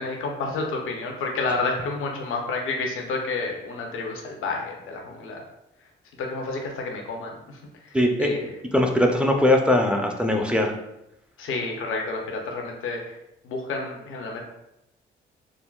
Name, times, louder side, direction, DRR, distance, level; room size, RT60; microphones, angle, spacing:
voice 1, 0.0-5.4 6.2-8.6 11.4-13.2 13.4-14.4, left 3 dB, 75° left, 1 dB, 0.7 m, -30 dB
voice 2, 7.9-8.3 8.7-10.7, left 1 dB, 5° right, 2 dB, 0.5 m, -20 dB
3.7 x 2.1 x 2.3 m, 0.86 s
supercardioid pair, 65°, 21 cm